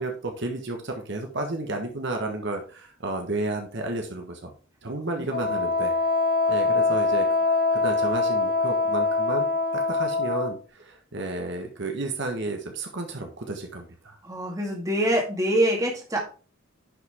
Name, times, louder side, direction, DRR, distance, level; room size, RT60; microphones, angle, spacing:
voice 1, 0.0-4.5 4.8-6.0 6.5-9.5 9.7-14.2, right 2 dB, 55° right, 3 dB, 1.4 m, -32 dB
Wind instrument woodwind instrument, 5.3-10.5, left 3 dB, 40° left, 1.6 m, -23 dB
voice 2, 14.2-16.2, right 1 dB, 15° right, 0 dB, 2.1 m, -24 dB
10.5 x 5.9 x 3.7 m, 0.36 s
head